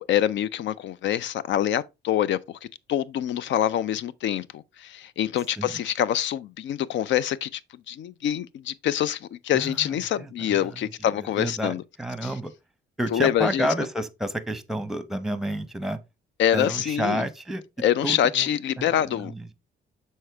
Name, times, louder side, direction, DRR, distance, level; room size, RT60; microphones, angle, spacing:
voice 1, 0.0-2.6 2.9-7.6 7.9-11.8 12.2-12.3 13.1-13.7 16.4-17.2 17.8-19.5, left 10 dB, 70° left, 0.5 m, -25 dB
voice 2, 9.5-9.9 10.2-10.3 11.4-12.5 13.0-16.0 16.5-17.6 18.0-18.5 18.8-19.5, equal, ahead, 0.8 m, -30 dB
6.4 x 4.3 x 3.4 m
cardioid pair, 90°, 20 cm